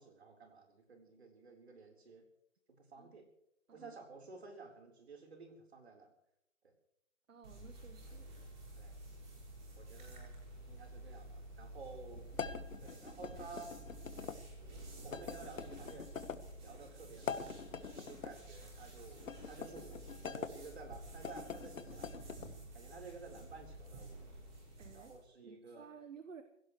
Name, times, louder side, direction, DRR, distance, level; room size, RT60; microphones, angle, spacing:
voice 1, 0.0-2.2 2.7-3.3 3.7-6.1 8.8-8.9 9.8-10.4 10.7-12.3 12.8-13.8 15.0-16.1 16.6-17.5 17.8-20.0 20.3-22.2 22.7-24.2 24.9-25.9, right 4 dB, 55° right, 2 dB, 4.1 m, -53 dB
voice 2, 7.3-8.3 24.8-25.1 25.4-26.4, right 6 dB, 75° right, 8 dB, 1.3 m, -54 dB
sound 1, 7.4-25.2, right 1 dB, 35° right, 6.0 m, -51 dB
sound 2, 12.3-14.4 15.1-16.4 17.1-18.3 19.2-20.5 21.1-22.5, left 6 dB, 85° left, 1.3 m, -44 dB
26.0 x 17.0 x 3.2 m, 0.80 s
hypercardioid pair, 175°, 38 cm